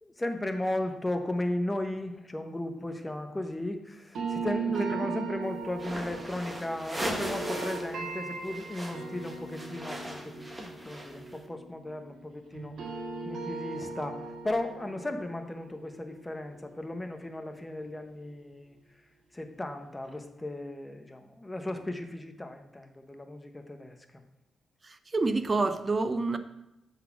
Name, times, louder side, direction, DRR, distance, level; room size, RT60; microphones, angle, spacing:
voice 1, 0.0-12.8 13.2-18.8 19.3-24.2, left 1 dB, 15° left, 6 dB, 0.9 m, -36 dB
sound 1, 4.1-12.2 12.5-17.5, right 4 dB, 75° right, 1.4 m, -38 dB
sound 2, 5.7-11.4, right 1 dB, 10° right, 1.2 m, -38 dB
voice 2, 25.1-26.4, right 3 dB, 30° right, 10 dB, 0.6 m, -27 dB
7.2 x 4.2 x 5.9 m, 0.90 s
cardioid pair, 85°, 0 cm